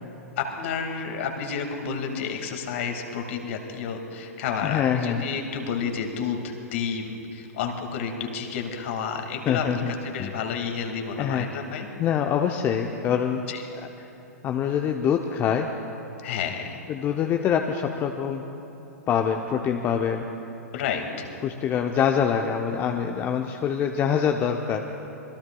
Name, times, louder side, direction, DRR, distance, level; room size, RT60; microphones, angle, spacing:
voice 1, 0.4-11.9 13.5-13.6 16.2-16.8 20.7-21.3, left 6 dB, 55° left, 3 dB, 2.1 m, -30 dB
voice 2, 4.6-5.2 9.5-9.9 10.2-10.3 11.2-11.5 12.0-13.4 14.4-15.7 16.9-18.4 19.1-20.3 21.4-24.8, left 8 dB, 25° left, 4 dB, 0.7 m, -25 dB
26.0 x 21.5 x 2.3 m, 2.9 s
figure-of-eight pair, 110°, 8 cm